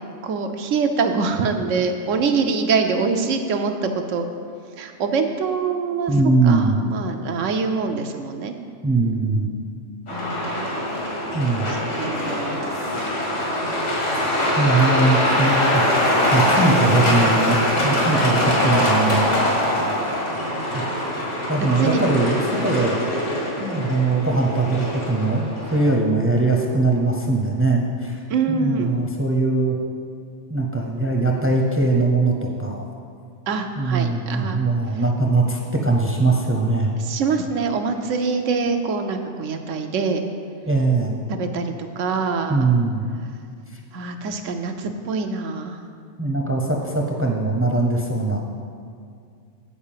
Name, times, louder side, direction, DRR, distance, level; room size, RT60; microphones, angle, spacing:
voice 1, 0.2-4.3 4.8-8.6 10.1-10.7 11.5-12.7 13.6-14.4 20.4-21.0 21.8-22.0 28.3-28.9 33.5-34.6 37.0-40.3 41.3-42.7 43.9-45.8, right 4 dB, 85° right, 6 dB, 1.1 m, -25 dB
voice 2, 6.1-6.8 8.8-9.5 11.3-11.7 14.6-15.8 16.3-19.3 20.7-20.8 21.5-23.0 23.6-28.2 28.5-29.8 30.5-32.8 33.8-36.9 40.7-41.2 42.5-43.0 46.2-48.4, right 3 dB, 15° right, 1 dB, 0.6 m, -21 dB
Truck, 10.1-25.9, left 1 dB, 70° left, 2.1 m, -22 dB
8.7 x 4.7 x 7.3 m, 2.3 s
omnidirectional pair, 1.3 m